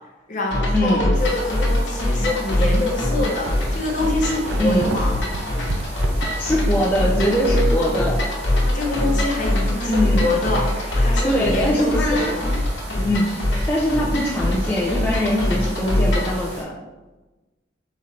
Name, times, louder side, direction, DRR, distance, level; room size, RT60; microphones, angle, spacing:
voice 1, 0.3-5.3 8.6-12.5, left 2 dB, 40° left, -1 dB, 0.8 m, -25 dB
sound 1, 0.5-16.4, left 1 dB, 80° left, 1.1 m, -23 dB
sound 2, 0.9-1.2 1.8-1.9 2.8-2.9 3.1-7.1 7.4-7.5 11.1-11.2, right 3 dB, 75° right, 0.3 m, -33 dB
sound 3, 1.1-16.6, right 1 dB, 35° right, 1.1 m, -39 dB
voice 2, 6.4-8.2 9.9-10.2 11.2-12.3 13.0-13.3 13.7-16.7, equal, 10° left, -5 dB, 0.5 m, -21 dB
3.9 x 3.2 x 4.2 m, 1.2 s
head